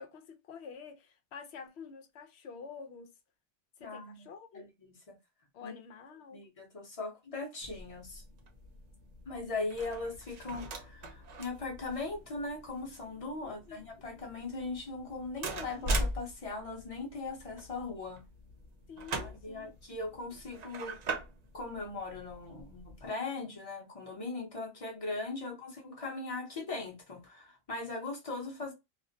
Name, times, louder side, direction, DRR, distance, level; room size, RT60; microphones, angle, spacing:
voice 1, 0.0-3.1 3.8-4.6 5.5-6.4 13.4-13.9 18.9-19.7, left 5 dB, 80° left, 0.9 m, -48 dB
voice 2, 3.8-4.1 4.5-5.2 5.6-5.7 6.3-8.2 9.3-18.2 19.2-21.0 21.5-28.7, left 3 dB, 35° left, 0.8 m, -39 dB
Door open close deadbolt, 7.6-23.1, right 2 dB, 50° right, 0.5 m, -41 dB
2.4 x 2.0 x 2.6 m
omnidirectional pair, 1.1 m